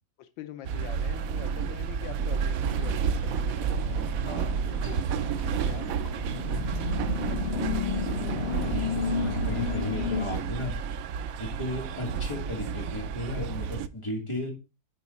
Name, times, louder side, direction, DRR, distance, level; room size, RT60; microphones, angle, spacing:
voice 1, 0.2-4.0 4.8-7.6, left 11 dB, 85° left, 9 dB, 1.5 m, -45 dB
sound 1, 0.6-13.9, right 7 dB, 80° right, 0.7 m, -31 dB
sound 2, 2.6-10.3, left 6 dB, 45° left, 0.9 m, -33 dB
voice 2, 4.2-4.8 8.6-10.8 11.4-14.5, left 1 dB, 15° left, -1 dB, 2.5 m, -35 dB
9.6 x 4.8 x 4.2 m, 0.29 s
omnidirectional pair, 2.0 m